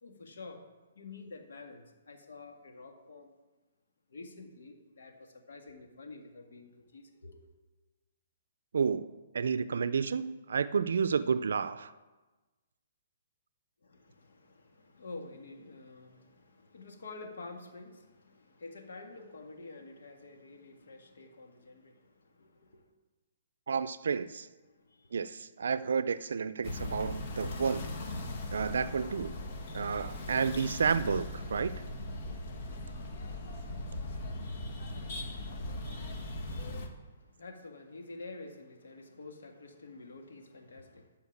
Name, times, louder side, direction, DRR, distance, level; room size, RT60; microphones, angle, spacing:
voice 1, 0.0-0.6 1.0-3.3 4.1-7.5 13.8-22.9 24.6-25.2 35.6-41.1, left 3 dB, 80° left, 3 dB, 1.9 m, -49 dB
voice 2, 8.7-9.1 9.3-11.9 23.7-24.5 25.1-27.9 28.5-29.3 29.7-31.7, right 6 dB, 80° right, 14 dB, 0.4 m, -31 dB
sound 1, 26.6-36.9, left 1 dB, 45° left, 1.5 m, -39 dB
12.5 x 4.5 x 7.3 m, 1.2 s
hypercardioid pair, 155°, 0 cm